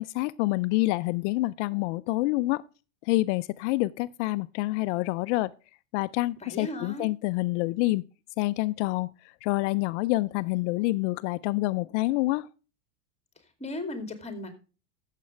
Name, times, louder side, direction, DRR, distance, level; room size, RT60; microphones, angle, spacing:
voice 1, 0.0-2.6 3.0-5.5 5.9-8.0 8.4-9.1 9.4-12.5, left 20 dB, 60° left, 0.5 m, -27 dB
voice 2, 6.4-7.1 13.6-14.6, left 1 dB, 15° left, 2.5 m, -36 dB
13.5 x 7.5 x 3.2 m
supercardioid pair, 115°, 39 cm